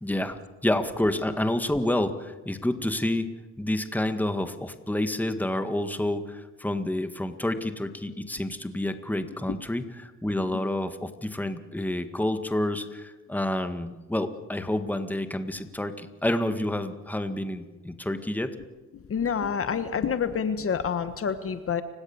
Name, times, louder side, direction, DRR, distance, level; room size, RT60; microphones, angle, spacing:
voice 1, 0.0-18.6, left 1 dB, 5° left, 8 dB, 1.8 m, -29 dB
voice 2, 19.1-21.8, left 7 dB, 45° left, 11 dB, 1.4 m, -27 dB
29.5 x 17.0 x 7.3 m, 1.2 s
cardioid pair, 90°, 30 cm